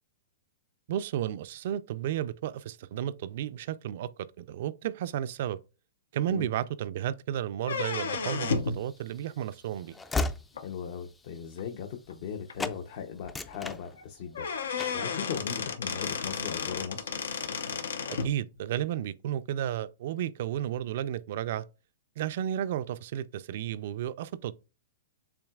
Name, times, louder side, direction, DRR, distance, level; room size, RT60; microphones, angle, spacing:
voice 1, 0.9-4.1 4.4-5.6 6.1-10.0 18.1-21.7 22.2-24.5, right 11 dB, 60° right, 0.4 m, -33 dB
sound 1, 7.6-8.8 10.6-10.7 11.6-11.7 12.1-12.2 12.5-12.6 14.0-14.1 14.3-18.3, left 5 dB, 90° left, 0.7 m, -32 dB
Train / Slam, 8.7-12.3 12.6-12.8 13.2-14.4 14.8-15.1, left 3 dB, 10° left, 0.3 m, -36 dB
voice 2, 10.6-14.5 14.9-17.1, left 7 dB, 55° left, 0.7 m, -38 dB
7.1 x 2.9 x 2.3 m
hypercardioid pair, 140°, 0 cm